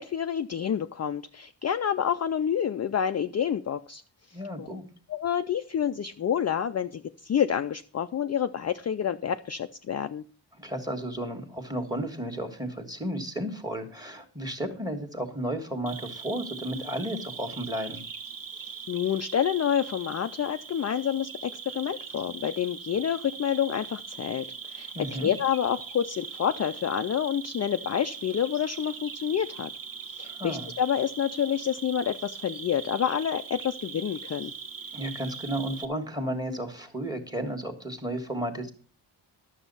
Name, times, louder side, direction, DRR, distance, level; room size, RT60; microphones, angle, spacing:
voice 1, 0.0-4.0 4.3-4.7 5.1-10.2 18.6-24.9 25.2-29.7 30.1-34.5, left 9 dB, 35° left, 8 dB, 0.4 m, -28 dB
voice 2, 4.3-4.9 10.6-18.0 24.9-25.3 30.2-30.7 34.9-38.7, right 1 dB, 10° right, 6 dB, 1.6 m, -33 dB
Cricket, 15.9-35.9, right 6 dB, 45° right, 1.2 m, -41 dB
12.0 x 7.1 x 5.4 m, 0.41 s
wide cardioid pair, 150°, 46 cm